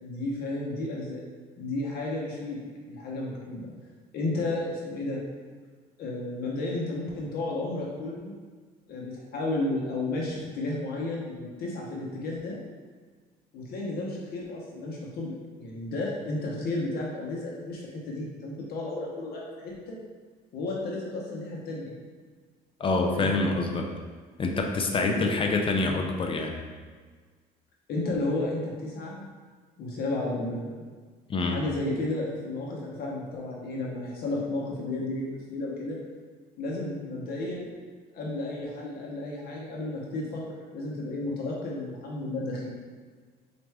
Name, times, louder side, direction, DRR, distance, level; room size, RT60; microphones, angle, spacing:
voice 1, 0.0-1.2 1.6-3.7 4.1-5.2 6.0-8.3 8.9-12.6 13.5-19.9 20.5-22.0 23.1-23.4 24.9-25.3 27.9-29.3 29.8-30.8 31.5-36.0 36.6-37.7 38.1-42.7, left 2 dB, 65° left, -3 dB, 0.8 m, -33 dB
voice 2, 22.8-23.9 24.4-26.5 31.3-31.6, left 3 dB, 30° left, 2 dB, 0.4 m, -26 dB
4.4 x 2.5 x 3.2 m, 1.5 s
cardioid pair, 110°, 17 cm